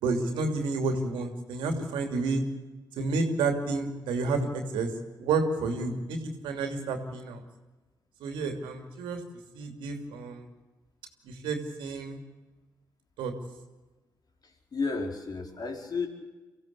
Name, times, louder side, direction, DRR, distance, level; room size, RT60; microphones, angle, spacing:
voice 1, 0.0-2.4 3.0-4.9 5.2-6.2 6.4-7.4 8.2-9.2 9.5-10.4 11.2-12.2 13.2-13.3, right 3 dB, 85° right, 5 dB, 2.8 m, -30 dB
voice 2, 14.4-16.1, left 4 dB, 55° left, 4 dB, 4.4 m, -33 dB
25.0 x 15.5 x 8.4 m, 1.2 s
supercardioid pair, 45°, 8 cm